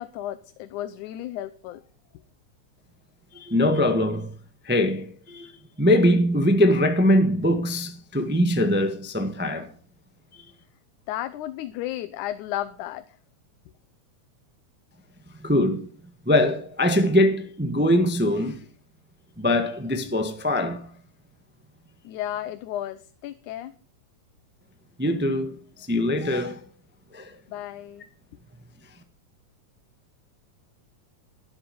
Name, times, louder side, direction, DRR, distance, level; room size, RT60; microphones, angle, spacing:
voice 1, 0.0-1.8 11.1-13.2 22.0-23.7 27.5-28.1, left 13 dB, 85° left, 2.2 m, -33 dB
voice 2, 3.3-4.3 4.6-5.5 5.8-9.7 15.3-15.9 16.2-18.7 19.4-20.9 25.0-26.6 27.1-27.3, left 1 dB, 10° right, 0.4 m, -22 dB
12.0 x 11.5 x 5.3 m
omnidirectional pair, 3.4 m